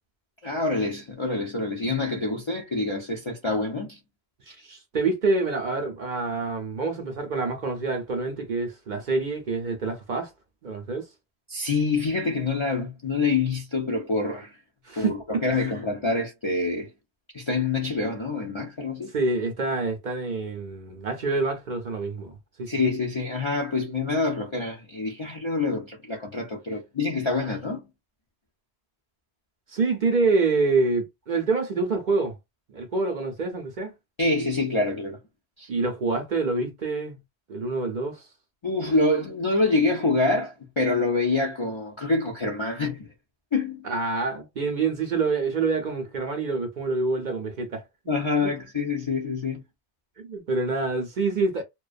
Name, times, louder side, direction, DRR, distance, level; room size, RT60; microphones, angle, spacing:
voice 1, 0.4-4.0 11.5-14.5 15.0-16.9 17.3-19.1 22.7-27.8 34.2-35.2 35.6-35.7 38.6-43.1 43.5-43.9 48.1-49.6, left 3 dB, 45° left, 0.4 m, -26 dB
voice 2, 4.5-10.3 10.6-11.1 14.8-15.7 19.1-22.7 29.7-32.4 32.7-33.9 35.7-37.2 37.5-38.2 43.8-47.8 48.4-48.5 50.2-51.6, right 3 dB, 55° right, 0.6 m, -27 dB
2.3 x 2.2 x 2.4 m
omnidirectional pair, 1.1 m